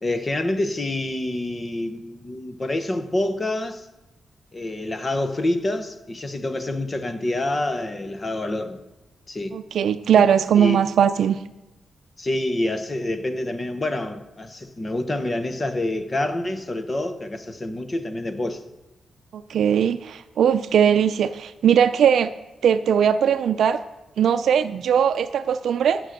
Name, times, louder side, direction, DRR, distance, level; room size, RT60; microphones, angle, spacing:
voice 1, 0.0-3.9 4.5-8.8 9.3-9.6 10.1-10.2 10.5-10.8 12.2-18.6, left 1 dB, 20° left, 0.8 m, -27 dB
voice 2, 9.5-11.4 19.3-22.3 22.6-23.8 24.2-26.0, right 8 dB, 75° right, 0.5 m, -19 dB
12.5 x 7.7 x 6.5 m
wide cardioid pair, 175°, 0 cm